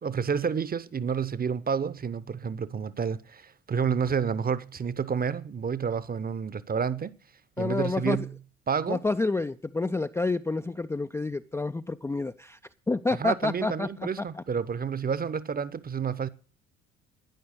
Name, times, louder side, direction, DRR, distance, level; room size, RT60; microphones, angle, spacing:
voice 1, 0.0-7.1 7.6-8.3 8.7-9.0 13.2-16.3, right 6 dB, 25° right, 1.0 m, -29 dB
voice 2, 7.6-8.3 8.9-12.6 12.9-14.1 14.3-14.4, left 3 dB, 5° left, 0.5 m, -29 dB
12.0 x 10.5 x 6.8 m
figure-of-eight pair, 55°, 37 cm